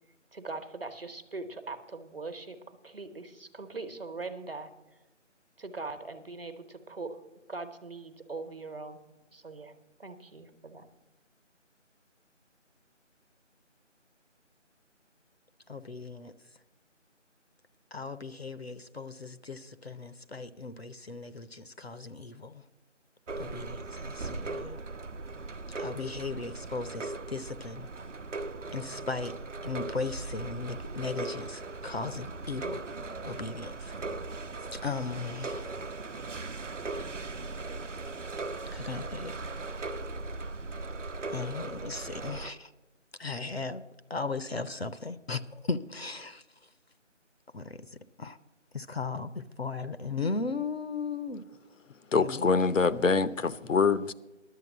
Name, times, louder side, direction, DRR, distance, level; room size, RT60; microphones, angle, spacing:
voice 1, 0.3-4.7 5.6-7.2 7.5-9.0 9.3-9.7 10.0-10.9, right 3 dB, 50° right, 1.1 m, -41 dB
voice 2, 15.7-16.3 17.9-22.6 23.4-24.8 25.8-27.9 28.7-29.3 29.6-32.8 33.2-33.9 34.7-35.7 38.7-39.4 41.3-42.7 43.2-43.8 44.1-46.4 47.5-47.8 48.2-48.4 48.7-51.4 52.1-52.6, left 4 dB, 55° left, 0.6 m, -37 dB
sound 1, 23.3-42.5, right 3 dB, 75° right, 0.9 m, -39 dB
voice 3, 52.1-54.1, left 4 dB, 85° left, 0.8 m, -25 dB
11.0 x 8.0 x 7.3 m
figure-of-eight pair, 175°, 37 cm